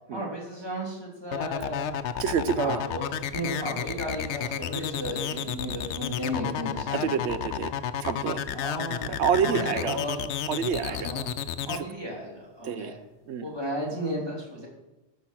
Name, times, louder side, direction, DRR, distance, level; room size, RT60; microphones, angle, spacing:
voice 1, 0.1-1.9 2.6-7.1 8.5-10.3 10.8-11.3 11.6-13.0 13.4-14.7, equal, 20° right, -3 dB, 3.2 m, -34 dB
sound 1, 1.3-11.8, left 9 dB, 80° left, 0.9 m, -31 dB
voice 2, 2.2-2.8 6.9-7.7 8.0-8.4 9.2-10.0 10.5-11.1 12.6-13.0 13.3-13.5, right 7 dB, 85° right, 13 dB, 1.0 m, -27 dB
14.0 x 5.4 x 6.0 m, 1.0 s
omnidirectional pair, 1.1 m